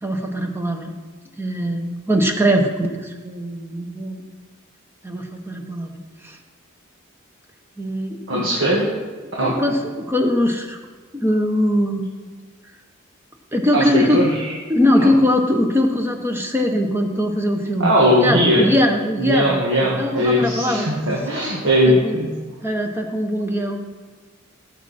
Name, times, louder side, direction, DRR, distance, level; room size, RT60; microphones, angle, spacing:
voice 1, 0.0-0.9 1.4-4.2 5.0-6.0 6.2-6.4 7.8-8.4 9.4-10.8 11.1-12.0 13.5-14.2 14.7-17.9 18.2-20.9 21.8-22.2 22.6-23.8, equal, 10° right, 3 dB, 1.1 m, -21 dB
voice 2, 8.3-8.9 9.4-9.5 13.7-14.5 15.0-15.1 17.8-18.7 19.2-22.3, equal, 65° right, -4 dB, 2.0 m, -19 dB
17.5 x 7.5 x 4.4 m, 1.5 s
head